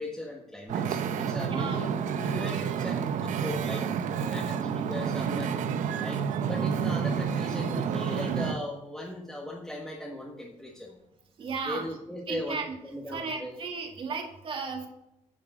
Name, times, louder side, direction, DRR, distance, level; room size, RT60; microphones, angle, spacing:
voice 1, 0.0-3.9 4.2-5.6 5.9-11.0 11.6-13.6, left 1 dB, 5° left, -3 dB, 1.5 m, -38 dB
Wind / Ocean, 0.7-8.6, right 7 dB, 90° right, 0.9 m, -29 dB
voice 2, 1.4-1.8 11.4-11.9 12.3-12.8 13.1-14.9, right 4 dB, 45° right, 2 dB, 2.1 m, -34 dB
10.0 x 7.5 x 5.0 m, 0.87 s
cardioid pair, 160°, 13 cm